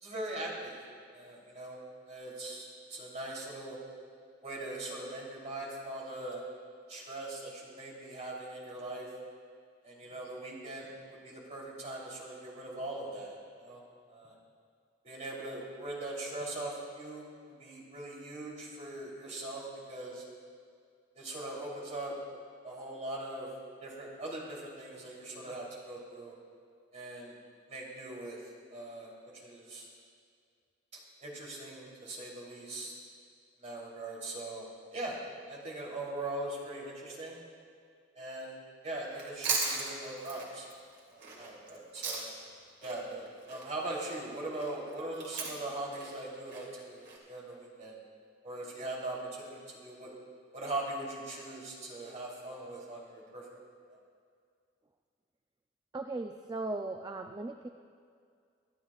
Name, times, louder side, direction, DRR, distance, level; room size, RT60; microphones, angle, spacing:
voice 1, 0.0-0.8 1.1-1.8 2.1-3.8 4.4-6.4 6.9-9.1 9.8-13.8 14.1-14.3 15.0-20.2 21.1-22.1 22.6-23.5 23.8-26.3 26.9-27.4 27.7-28.4 28.7-29.9 31.2-32.9 33.6-34.7 34.9-35.2 35.5-37.4 38.1-38.6 38.8-40.7 41.1-42.3 42.8-48.0 48.4-50.1 50.5-53.4 53.9-54.0, right 2 dB, 40° right, -4 dB, 3.3 m, -41 dB
Chewing mastication, 39.1-42.5 42.8-47.2, right 4 dB, 65° right, 2.8 m, -37 dB
voice 2, 55.9-57.7, right 2 dB, 20° right, 5 dB, 0.4 m, -37 dB
24.5 x 11.5 x 2.4 m, 2.2 s
head